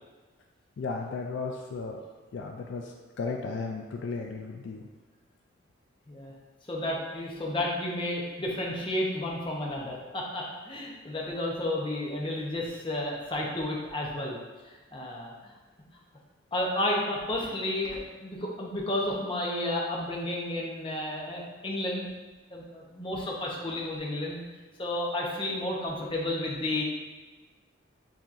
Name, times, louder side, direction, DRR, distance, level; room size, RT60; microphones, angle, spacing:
voice 1, 0.8-2.0 2.3-4.9, left 4 dB, 65° left, 2 dB, 0.3 m, -35 dB
voice 2, 6.7-14.4 14.9-15.5 16.5-22.1 22.5-24.4 24.8-26.8, left 1 dB, 25° left, -2 dB, 0.7 m, -32 dB
7.1 x 2.9 x 2.5 m, 1.3 s
head